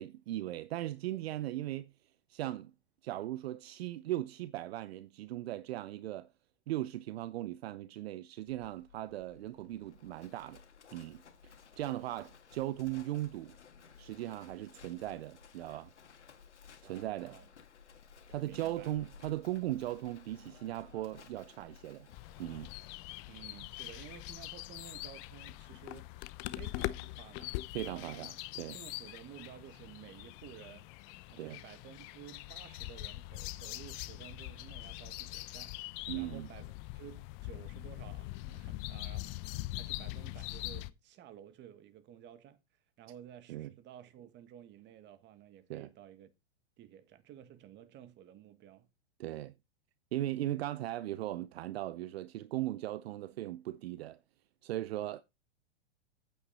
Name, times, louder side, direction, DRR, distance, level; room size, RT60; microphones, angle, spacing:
voice 1, 0.0-1.9 2.3-2.7 3.0-6.3 6.7-10.6 10.9-13.6 14.0-15.9 16.8-17.4 18.3-22.1 22.4-22.7 27.7-28.8 31.4-31.6 36.1-36.5 43.5-43.7 45.7-45.9 49.2-49.5 50.1-54.2 54.6-55.2, right 14 dB, 65° right, 0.7 m, -38 dB
Livestock farm animals working animals, 8.5-22.9, left 6 dB, 90° left, 2.0 m, -57 dB
voice 2, 16.9-17.5 18.4-19.0 23.3-26.2 26.5-28.3 28.7-30.9 31.3-35.8 36.2-36.7 36.9-42.6 43.0-46.3 46.8-48.9, right 11 dB, 30° right, 1.7 m, -53 dB
sound 1, 22.1-40.9, left 18 dB, 40° left, 0.7 m, -43 dB
8.9 x 8.4 x 4.2 m
hypercardioid pair, 120°, 34 cm